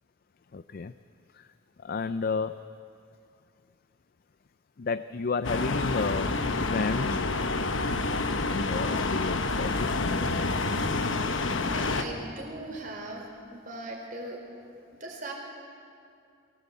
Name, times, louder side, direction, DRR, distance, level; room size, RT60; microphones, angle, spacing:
voice 1, 0.5-0.9 1.3-1.5 1.8-2.6 4.8-7.2 8.5-10.1, left 4 dB, 45° left, 12 dB, 0.4 m, -32 dB
sound 1, 5.4-12.0, left 3 dB, 65° left, 1.1 m, -28 dB
voice 2, 11.6-14.4 15.0-15.3, right 2 dB, 40° right, 0 dB, 4.3 m, -39 dB
23.0 x 18.0 x 8.2 m, 2.5 s
head